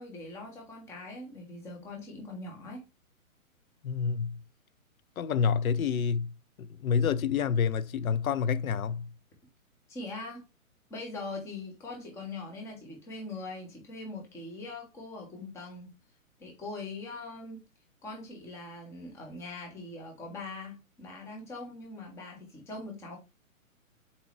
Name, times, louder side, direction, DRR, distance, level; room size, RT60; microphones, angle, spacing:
voice 1, 0.0-2.8 9.9-10.5 10.9-15.9 16.4-17.6 18.0-23.2, left 2 dB, 5° left, 0.7 m, -42 dB
voice 2, 3.8-4.4 5.2-6.3 6.6-9.1, left 6 dB, 75° left, 0.5 m, -28 dB
4.1 x 3.6 x 2.9 m
figure-of-eight pair, 135°, 42 cm